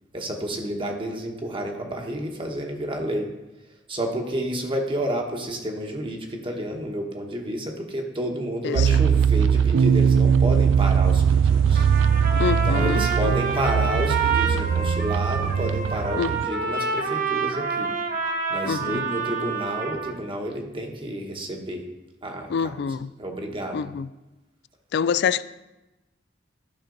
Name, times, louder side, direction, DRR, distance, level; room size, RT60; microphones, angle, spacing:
voice 1, 0.1-3.3 3.9-11.9 12.6-17.9 18.5-21.9 22.2-23.8, right 1 dB, 30° right, 2 dB, 1.1 m, -30 dB
voice 2, 8.6-9.0 12.4-13.3 16.2-16.5 18.6-19.0 22.5-23.1 23.7-24.1 24.9-25.4, left 6 dB, 65° left, 17 dB, 0.3 m, -26 dB
sound 1, 8.8-16.4, right 7 dB, 85° right, 0.3 m, -20 dB
Trumpet, 11.7-20.2, right 4 dB, 50° right, 1.0 m, -28 dB
12.0 x 5.9 x 3.9 m, 1.0 s
head